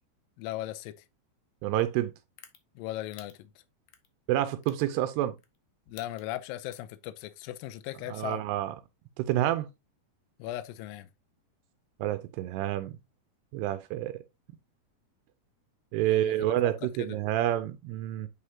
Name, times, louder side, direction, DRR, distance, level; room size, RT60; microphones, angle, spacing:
voice 1, 0.4-0.9 2.8-3.5 5.9-8.4 10.4-11.1 16.0-16.5 16.8-17.2, left 14 dB, 90° left, 2.0 m, -38 dB
voice 2, 1.6-2.1 4.3-5.3 8.1-8.8 9.2-9.7 12.0-13.0 13.5-14.1 15.9-18.3, right 13 dB, 85° right, 2.7 m, -28 dB
sound 1, 1.8-1.9 2.4-2.6 3.1-3.3 3.9-4.1 4.6-4.8 5.4-5.6 5.9-6.3 6.7-6.9, left 10 dB, 70° left, 2.1 m, -50 dB
7.9 x 4.9 x 2.8 m
omnidirectional pair, 4.8 m